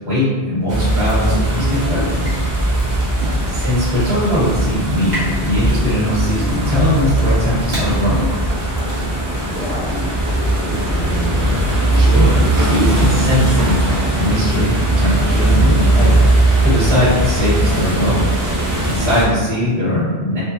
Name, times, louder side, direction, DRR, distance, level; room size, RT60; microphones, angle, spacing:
voice 1, 0.0-2.3 3.5-8.3 11.9-18.3 18.9-20.4, left 1 dB, 75° right, -9 dB, 1.6 m, -20 dB
sound 1, 0.7-19.2, right 1 dB, 30° right, 0.3 m, -18 dB
sound 2, 2.1-9.4, right 1 dB, 55° right, 1.2 m, -34 dB
voice 2, 3.3-3.7 9.5-11.5, equal, 45° left, -6 dB, 0.5 m, -30 dB
3.6 x 2.0 x 2.6 m, 1.3 s
omnidirectional pair, 1.1 m